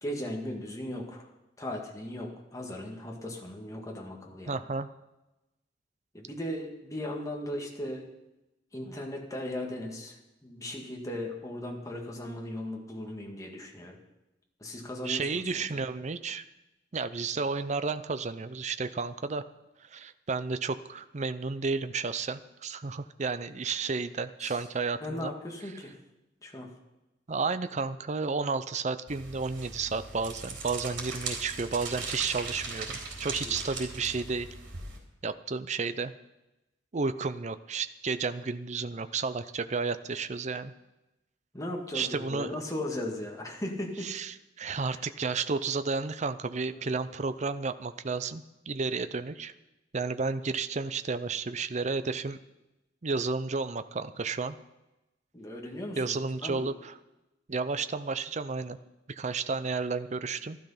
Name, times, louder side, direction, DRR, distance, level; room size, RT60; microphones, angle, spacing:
voice 1, 0.0-1.3 1.6-4.6 6.1-8.1 8.7-14.0 14.6-15.8 24.4-24.6 25.0-25.9 26.4-26.7 33.4-33.5 41.5-44.1 44.8-45.0 46.7-46.9 55.3-56.1 56.4-56.7, left 1 dB, 20° left, 0 dB, 1.9 m, -37 dB
voice 2, 4.5-4.9 15.0-16.4 16.9-19.5 19.9-25.3 27.3-34.5 35.2-36.1 36.9-40.7 41.9-42.6 44.0-49.5 49.9-52.4 53.0-54.6 56.0-56.9 57.5-58.8 59.1-60.6, right 4 dB, 40° right, 12 dB, 0.6 m, -32 dB
sound 1, 29.1-35.0, right 3 dB, 85° right, 3.8 m, -39 dB
12.5 x 12.5 x 5.7 m, 0.97 s
head